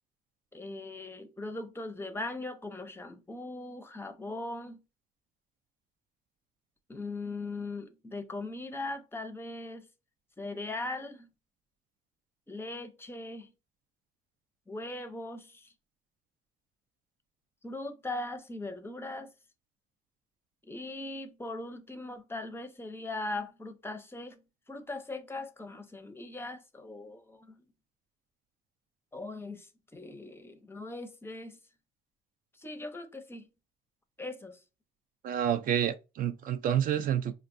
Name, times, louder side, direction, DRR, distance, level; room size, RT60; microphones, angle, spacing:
voice 1, 0.5-4.8 6.9-9.9 10.4-11.3 12.5-13.5 14.7-15.7 17.6-19.3 20.7-24.4 24.7-27.5 29.1-31.6 32.6-33.5 34.2-34.6, left 2 dB, 15° left, 0.5 m, -40 dB
voice 2, 35.2-37.3, right 9 dB, 55° right, 0.4 m, -29 dB
4.4 x 2.3 x 2.5 m
cardioid pair, 110°, 17 cm